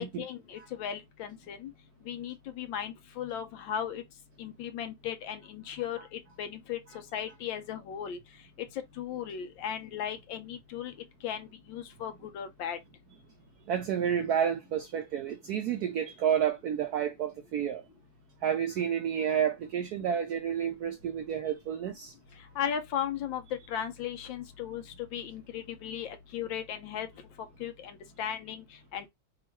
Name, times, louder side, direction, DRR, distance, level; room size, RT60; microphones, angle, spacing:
voice 1, 0.0-1.7 2.1-4.0 4.4-6.8 7.1-8.2 9.0-10.9 11.2-12.8 22.6-23.4 23.7-24.8 25.1-27.1 27.6-28.6 28.9-29.1, left 9 dB, 75° left, 1.4 m, -36 dB
voice 2, 13.7-17.8 18.4-22.1, right 8 dB, 75° right, 0.9 m, -30 dB
3.6 x 2.4 x 4.4 m
omnidirectional pair, 2.2 m